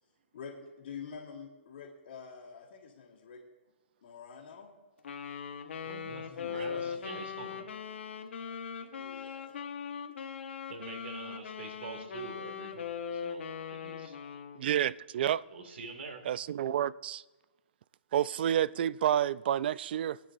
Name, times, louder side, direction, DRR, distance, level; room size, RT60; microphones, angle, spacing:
voice 1, 0.3-3.4 4.0-4.7 6.3-6.9 9.0-9.6, left 6 dB, 60° left, 2.5 m, -47 dB
Wind instrument woodwind instrument, 5.0-14.6, left 7 dB, 80° left, 1.3 m, -40 dB
voice 2, 5.8-7.7 10.7-14.2 15.5-16.2, right 4 dB, 75° right, 2.3 m, -45 dB
voice 3, 14.6-15.4 16.3-17.2 18.1-20.2, right 10 dB, 55° right, 0.4 m, -29 dB
24.0 x 9.3 x 2.6 m
hypercardioid pair, 150°, 6 cm